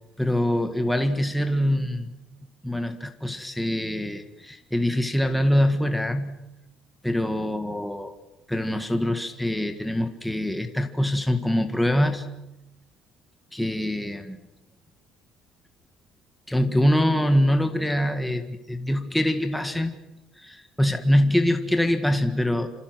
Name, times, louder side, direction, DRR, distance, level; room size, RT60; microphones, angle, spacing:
voice 1, 0.2-2.1 2.6-6.4 7.0-8.1 8.5-12.3 13.5-14.4 16.5-19.9 20.4-22.7, left 1 dB, 5° left, 6 dB, 1.8 m, -24 dB
27.5 x 27.0 x 6.3 m, 0.89 s
cardioid pair, 150°, 0 cm